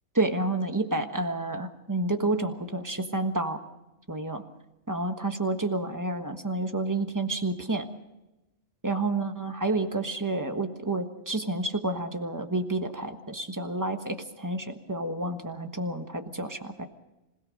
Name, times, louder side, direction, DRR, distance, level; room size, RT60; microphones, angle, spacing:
voice 1, 0.1-3.6 4.1-4.4 4.9-7.9 8.8-16.9, right 2 dB, 15° right, 6 dB, 1.4 m, -29 dB
26.5 x 17.5 x 6.6 m, 0.99 s
omnidirectional pair, 1.3 m